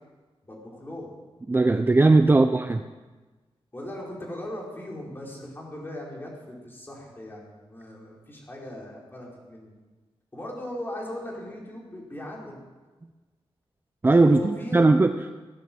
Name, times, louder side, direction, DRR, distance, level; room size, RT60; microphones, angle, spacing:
voice 1, 0.4-1.1 3.7-9.7 10.3-12.6 14.2-14.8, left 1 dB, 20° left, -3 dB, 4.3 m, -38 dB
voice 2, 1.5-2.8 14.0-15.1, right 3 dB, 20° right, 8 dB, 0.6 m, -18 dB
16.5 x 9.8 x 7.6 m, 1.3 s
wide cardioid pair, 135°, 10 cm